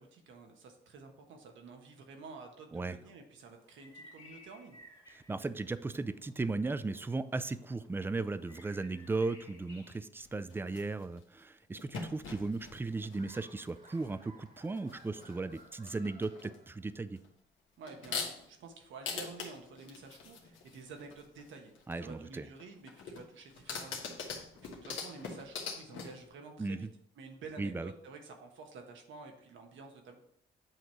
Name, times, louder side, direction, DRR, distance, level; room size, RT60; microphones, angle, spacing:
voice 1, 0.0-4.8 17.8-24.5 24.8-26.9 27.2-30.2, right 4 dB, 75° right, 3 dB, 1.2 m, -50 dB
sound 1, 3.4-10.0, left 1 dB, 20° left, 2.0 m, -59 dB
voice 2, 5.1-17.2 21.9-22.5 26.6-26.9 27.6-27.9, right 3 dB, 10° right, 14 dB, 0.3 m, -36 dB
sound 2, 10.2-11.2 11.7-14.2 14.5-15.6 15.9-16.6 17.2-17.3 17.8-18.6 19.1-21.9 22.6-26.2, left 5 dB, 75° left, 1.3 m, -43 dB
Laughter, 13.2-17.2, right 2 dB, 45° right, 1.7 m, -59 dB
8.0 x 3.0 x 4.7 m, 0.70 s
cardioid pair, 90°, 20 cm